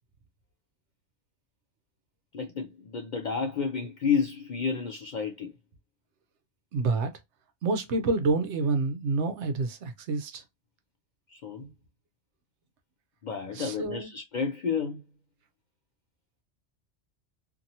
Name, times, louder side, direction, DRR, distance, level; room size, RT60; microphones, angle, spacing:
voice 1, 2.3-5.5 11.3-11.7 13.2-15.0, left 6 dB, 60° left, 0.5 m, -31 dB
voice 2, 6.7-7.1 7.6-10.4 13.5-14.1, right 3 dB, 75° right, 1.0 m, -28 dB
2.8 x 2.6 x 2.7 m
omnidirectional pair, 1.2 m